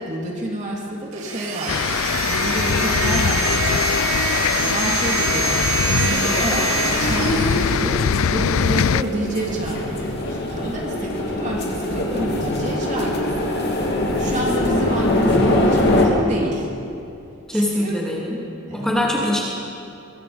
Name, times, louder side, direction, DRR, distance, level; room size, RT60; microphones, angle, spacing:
voice 1, 0.0-4.2 4.6-5.6 5.9-13.6 14.2-16.7 17.5-18.0 18.7-19.0, right 1 dB, 35° right, -2 dB, 3.4 m, -29 dB
sound 1, 1.1-8.5, right 5 dB, 80° right, 2.3 m, -26 dB
sound 2, 1.7-9.0, left 7 dB, 75° left, 0.4 m, -22 dB
sound 3, 6.2-16.1, left 1 dB, 50° left, 2.8 m, -23 dB
voice 2, 17.5-18.4 18.7-19.4, left 1 dB, 5° left, -5 dB, 3.0 m, -22 dB
24.5 x 23.5 x 5.2 m, 2.6 s
head